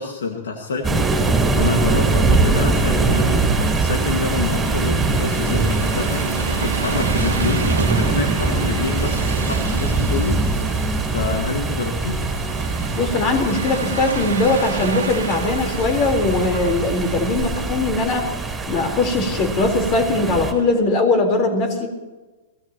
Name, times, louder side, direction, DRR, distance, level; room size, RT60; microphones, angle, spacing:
voice 1, 0.0-6.3 6.6-10.4 11.0-12.2, left 4 dB, 75° left, 3 dB, 1.9 m, -27 dB
sound 1, 0.8-20.5, right 3 dB, 10° right, 3.6 m, -22 dB
sound 2, 1.4-17.9, right 4 dB, 90° right, 1.6 m, -31 dB
voice 2, 13.0-18.3 18.7-21.9, left 2 dB, 40° left, 3 dB, 4.1 m, -20 dB
24.5 x 18.0 x 3.0 m, 1.2 s
hypercardioid pair, 110°, 0 cm